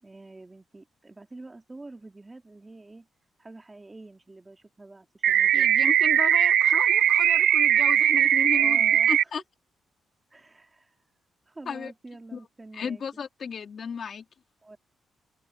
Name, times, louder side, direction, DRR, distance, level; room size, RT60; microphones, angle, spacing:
voice 1, 0.0-3.1 3.4-5.7 8.5-9.3 10.3-11.0 11.5-13.0 14.6-14.8, right 2 dB, 15° right, 2.3 m, -47 dB
sound 1, 5.2-9.2, right 10 dB, 70° right, 0.4 m, -20 dB
voice 2, 5.5-9.4 11.7-11.9 12.3-12.4 12.7-14.2, left 6 dB, 45° left, 3.6 m, -34 dB
cardioid pair, 140°, 0 cm